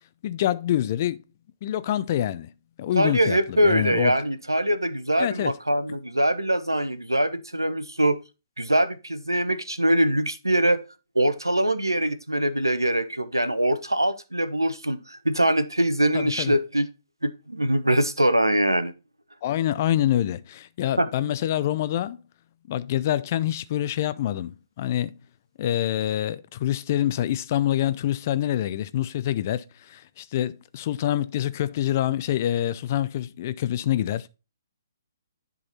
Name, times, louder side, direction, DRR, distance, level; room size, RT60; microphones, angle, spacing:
voice 1, 0.2-1.2 1.6-2.5 2.8-4.2 5.2-5.5 16.1-16.5 19.4-22.2 22.7-25.2 25.6-34.3, left 12 dB, 40° left, 0.5 m, -26 dB
voice 2, 3.0-8.2 8.6-10.8 11.1-16.9 17.2-18.9 21.0-21.1, right 1 dB, 90° right, 0.9 m, -23 dB
10.5 x 3.9 x 4.3 m
figure-of-eight pair, 130°, 2 cm